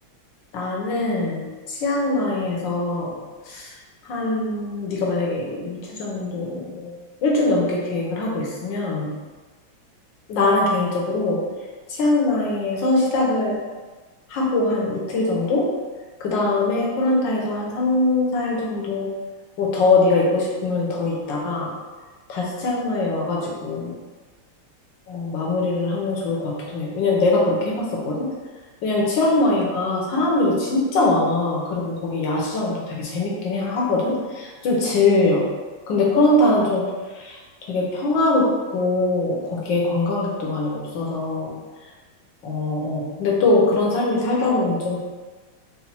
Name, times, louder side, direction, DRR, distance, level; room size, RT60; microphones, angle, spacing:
voice 1, 0.5-3.2 3.5-3.7 4.0-6.9 7.2-9.1 10.3-11.4 11.9-13.6 14.3-15.7 16.2-19.1 19.6-21.7 22.3-24.0 25.1-28.3 28.8-35.4 35.9-36.8 37.7-41.6 42.4-45.0, left 2 dB, 70° left, -3 dB, 1.5 m, -22 dB
4.1 x 2.2 x 4.3 m, 1.3 s
omnidirectional pair, 2.2 m